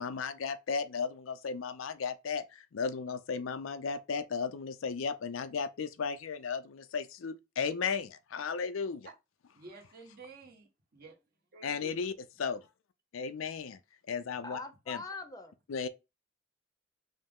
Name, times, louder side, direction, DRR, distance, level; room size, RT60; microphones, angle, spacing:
voice 1, 0.0-9.1 11.6-12.1 12.4-12.6 13.1-13.8 14.1-14.6 14.9-15.0 15.7-15.9, left 5 dB, 90° left, 0.5 m, -35 dB
voice 2, 9.5-11.1 11.5-12.0, right 3 dB, 50° right, 1.1 m, -51 dB
voice 3, 14.4-15.6, left 3 dB, 20° left, 0.6 m, -42 dB
5.4 x 2.0 x 3.5 m
head